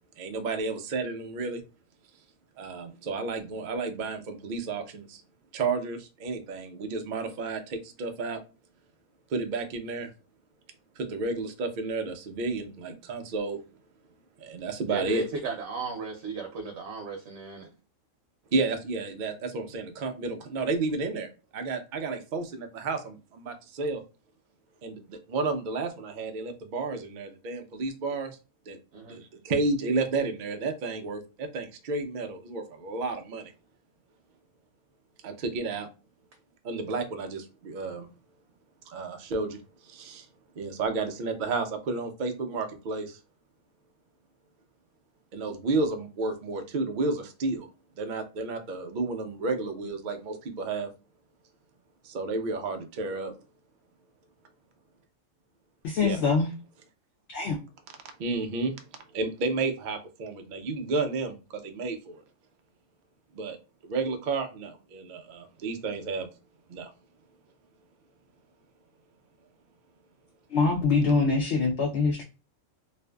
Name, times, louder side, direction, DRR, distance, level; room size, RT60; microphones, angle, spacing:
voice 1, 0.2-1.6 2.6-5.2 5.5-8.4 9.3-10.1 11.0-13.6 14.4-15.3 18.5-24.0 24.8-28.4 28.7-28.8 29.1-33.5 35.2-35.9 36.6-38.1 38.9-40.3 40.6-43.2 45.3-47.7 48.0-50.9 52.0-53.3 56.0-56.2 58.2-58.8 59.1-62.2 63.3-63.6 63.8-66.3 66.7-66.9, right 3 dB, 90° right, 0.4 m, -31 dB
voice 2, 14.9-17.7 28.9-29.2, right 4 dB, 70° right, 0.8 m, -35 dB
voice 3, 55.8-56.5 57.3-57.6 70.5-72.2, left 4 dB, 65° left, 0.7 m, -24 dB
2.5 x 2.4 x 2.2 m
omnidirectional pair, 1.4 m